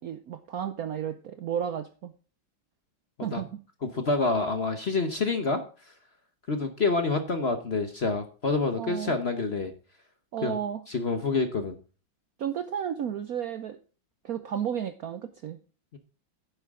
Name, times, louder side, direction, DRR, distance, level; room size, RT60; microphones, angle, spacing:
voice 1, 0.0-2.1 3.2-3.6 8.8-9.1 10.3-10.8 12.4-13.8 14.2-15.6, right 9 dB, 65° right, 10 dB, 0.9 m, -33 dB
voice 2, 3.9-5.6 6.5-9.7 10.4-10.6 10.9-11.8 15.9-16.0, left 3 dB, 40° left, 7 dB, 1.0 m, -27 dB
10.5 x 10.0 x 3.7 m, 0.37 s
omnidirectional pair, 2.2 m